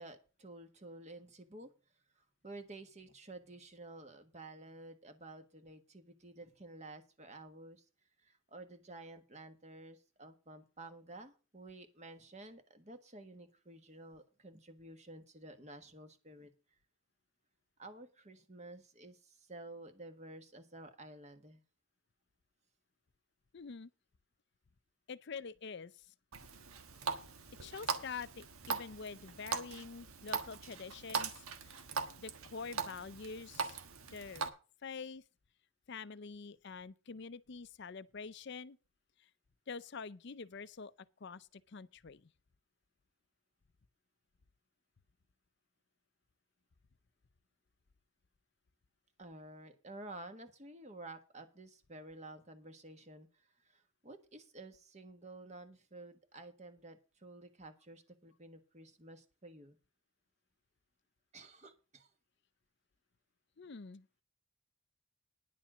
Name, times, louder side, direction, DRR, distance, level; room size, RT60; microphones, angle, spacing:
voice 1, 0.0-1.7 2.1-7.8 8.2-16.5 17.8-21.6 49.2-59.8 61.3-62.1, right 2 dB, 30° right, 1.4 m, -52 dB
voice 2, 23.5-23.9 25.1-26.1 27.6-31.8 32.2-33.8 34.1-34.5 34.8-35.2 35.9-38.8 39.2-39.3 39.7-40.9 41.2-42.3 63.6-64.1, left 5 dB, 50° left, 0.5 m, -46 dB
Water tap faucet, 26.3-34.5, right 5 dB, 80° right, 1.4 m, -41 dB
10.5 x 7.2 x 6.2 m
head